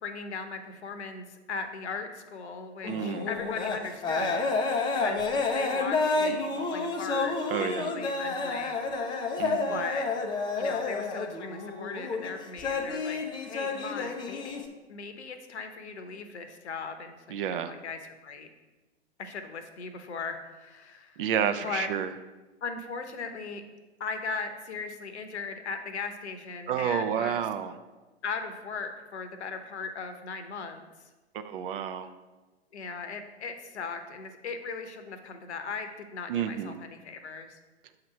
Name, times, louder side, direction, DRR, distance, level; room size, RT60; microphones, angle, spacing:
voice 1, 0.0-4.5 5.0-5.2 5.5-8.8 9.7-10.1 10.6-13.2 13.5-18.5 19.2-21.2 21.6-21.9 22.6-23.6 24.0-27.4 28.2-30.8 32.7-37.6, left 5 dB, 75° left, 8 dB, 0.8 m, -38 dB
sound 1, 2.8-14.6, left 3 dB, 15° left, 0.4 m, -30 dB
voice 2, 2.9-3.3 7.5-7.9 9.4-9.8 17.3-17.7 21.2-22.1 26.7-27.7 31.3-32.1 36.3-36.7, right 8 dB, 50° right, 9 dB, 0.5 m, -30 dB
6.4 x 2.9 x 5.6 m, 1.2 s
figure-of-eight pair, 105°, 34 cm